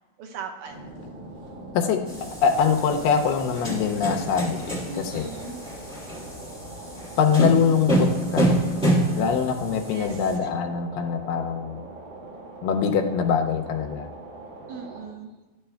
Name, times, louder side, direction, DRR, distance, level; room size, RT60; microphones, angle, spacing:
voice 1, 0.2-0.9 4.9-5.6 9.9-10.3 14.7-15.3, right 5 dB, 75° right, 3 dB, 2.2 m, -38 dB
sound 1, 0.6-15.1, right 2 dB, 55° right, 3.6 m, -42 dB
sound 2, 2.1-10.4, right 1 dB, ahead, 1.6 m, -27 dB
voice 2, 2.4-5.3 7.2-8.6 9.2-11.9 12.6-14.1, left 6 dB, 80° left, 3 dB, 2.3 m, -23 dB
12.5 x 9.6 x 2.2 m, 1.1 s
omnidirectional pair, 4.1 m